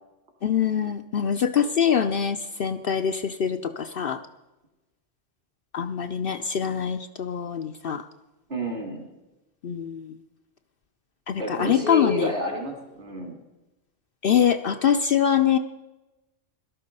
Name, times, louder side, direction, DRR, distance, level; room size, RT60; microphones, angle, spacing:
voice 1, 0.4-4.2 5.7-8.0 9.6-10.2 11.3-12.3 14.2-15.6, left 8 dB, 55° left, 8 dB, 0.8 m, -24 dB
voice 2, 8.5-9.0 11.4-13.4, equal, 55° right, 2 dB, 3.4 m, -30 dB
18.0 x 12.5 x 5.4 m, 1.0 s
omnidirectional pair, 1.3 m